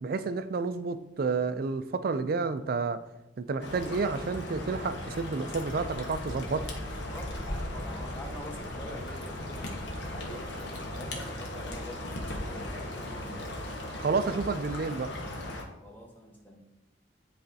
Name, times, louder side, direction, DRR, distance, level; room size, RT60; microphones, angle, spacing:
voice 1, 0.0-3.0 3.4-6.7 14.0-15.1, right 4 dB, 50° right, 12 dB, 0.4 m, -30 dB
sound 1, 3.6-15.6, left 1 dB, 70° left, 1.1 m, -37 dB
voice 2, 7.1-10.5 10.9-13.4 15.8-16.6, left 1 dB, 10° left, 0 dB, 1.0 m, -46 dB
10.0 x 4.2 x 2.7 m, 0.97 s
head